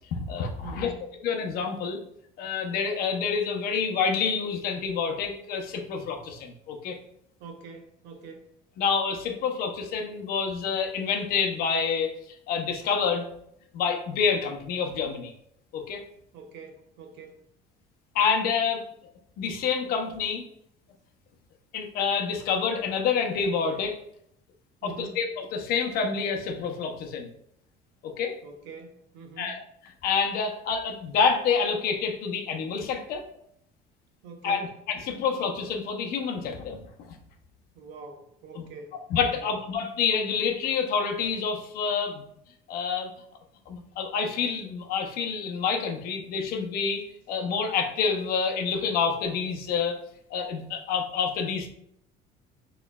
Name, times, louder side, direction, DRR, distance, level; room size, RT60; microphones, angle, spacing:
voice 1, 0.1-0.9 1.2-2.0 2.4-7.0 8.8-12.1 12.5-13.3 13.7-15.3 15.7-16.0 18.1-18.8 19.4-20.5 21.7-24.0 24.8-27.3 28.0-28.4 29.4-29.6 30.0-33.2 34.4-36.8 37.1-37.2 38.6-38.7 39.1-42.2 42.7-43.1 43.7-50.0 50.3-51.7, left 6 dB, 55° left, 4 dB, 0.6 m, -28 dB
voice 2, 0.6-1.0 7.4-8.5 16.3-17.4 24.8-25.2 28.4-29.6 34.2-34.7 37.7-39.5, right 4 dB, 75° right, 5 dB, 0.8 m, -44 dB
6.1 x 3.1 x 2.3 m, 0.73 s
cardioid pair, 175°, 19 cm